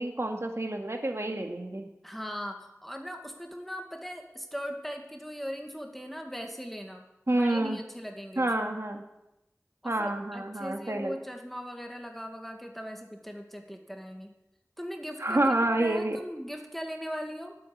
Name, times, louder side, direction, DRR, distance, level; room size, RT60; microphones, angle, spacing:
voice 1, 0.0-1.8 7.3-7.8 8.4-9.0 9.8-11.1 15.2-16.2, right 1 dB, 55° right, 3 dB, 2.0 m, -28 dB
voice 2, 2.0-7.0 7.3-8.5 9.8-14.3 14.8-17.6, equal, 5° left, 3 dB, 2.1 m, -39 dB
11.5 x 8.9 x 9.6 m, 0.89 s
wide cardioid pair, 40°, 5 cm